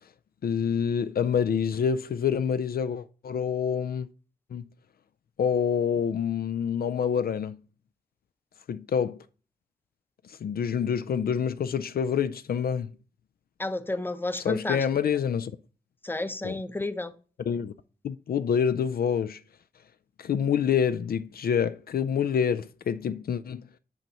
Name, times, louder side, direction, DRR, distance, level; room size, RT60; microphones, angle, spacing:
voice 1, 0.4-4.1 4.5-4.6 5.4-7.6 8.7-9.2 10.2-12.9 14.4-15.5 16.4-16.6 17.5-17.7 18.0-19.4 20.2-23.6, left 7 dB, 70° left, 0.4 m, -27 dB
voice 2, 13.6-14.8 16.0-17.1, left 2 dB, 15° left, 0.7 m, -31 dB
7.9 x 3.0 x 5.5 m
cardioid pair, 65°, 16 cm